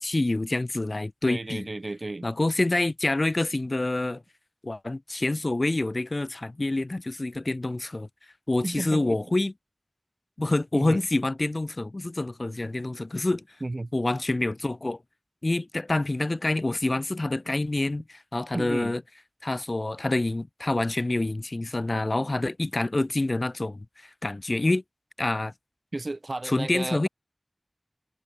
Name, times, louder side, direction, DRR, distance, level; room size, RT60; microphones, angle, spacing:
voice 1, 0.0-1.7 2.2-4.2 4.6-8.1 8.5-9.5 10.4-13.4 13.9-15.0 15.4-19.0 19.4-23.9 24.2-24.8 25.2-25.5 26.4-27.1, left 2 dB, 75° left, 0.7 m, -27 dB
voice 2, 1.3-2.3 8.6-9.3 10.7-11.1 13.6-13.9 18.5-18.9 25.9-27.1, right 2 dB, 90° right, 1.0 m, -33 dB
wide cardioid pair, 40°, 0 cm